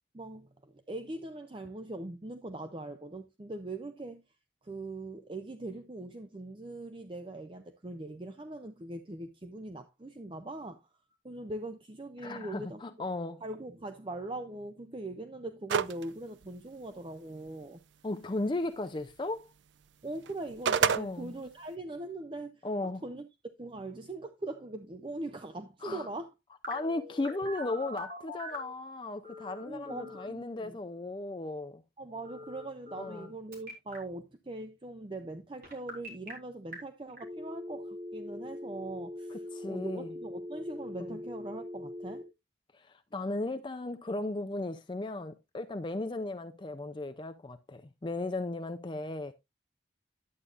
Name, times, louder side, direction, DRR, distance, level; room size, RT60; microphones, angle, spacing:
voice 1, 0.1-4.2 4.6-10.9 11.2-12.8 13.4-17.8 20.0-22.7 23.0-23.3 23.6-26.3 29.6-30.8 32.0-42.2, right 2 dB, 25° right, 0.5 m, -41 dB
voice 2, 12.2-13.4 18.0-19.5 20.9-21.3 22.6-23.0 25.8-26.1 26.7-31.8 33.0-33.3 39.5-40.1 41.0-41.2 42.7-49.3, left 2 dB, 25° left, 0.4 m, -36 dB
sound 1, 15.7-16.0 16.4-16.5 20.3-21.0, right 7 dB, 80° right, 0.4 m, -26 dB
Telephone, 26.6-28.7 29.2-30.3 32.2-33.3 33.5-34.0 35.6-36.3 36.7-36.8 37.2-42.2, left 1 dB, 50° right, 3.8 m, -42 dB
11.0 x 8.5 x 2.5 m
head